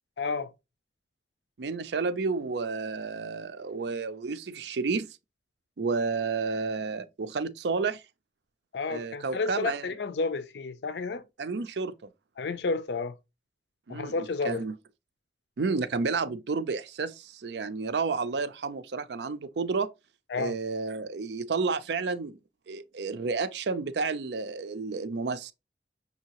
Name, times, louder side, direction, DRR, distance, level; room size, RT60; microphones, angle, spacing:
voice 1, 0.2-0.5 8.7-11.2 12.4-13.1 13.9-14.6 20.3-20.5, left 4 dB, 75° left, 0.5 m, -31 dB
voice 2, 1.6-5.2 5.8-8.0 8.9-9.9 11.4-11.9 13.9-14.2 14.4-14.7 15.6-19.9 20.4-22.4 22.7-25.5, right 4 dB, 75° right, 0.5 m, -31 dB
6.2 x 2.8 x 2.9 m
head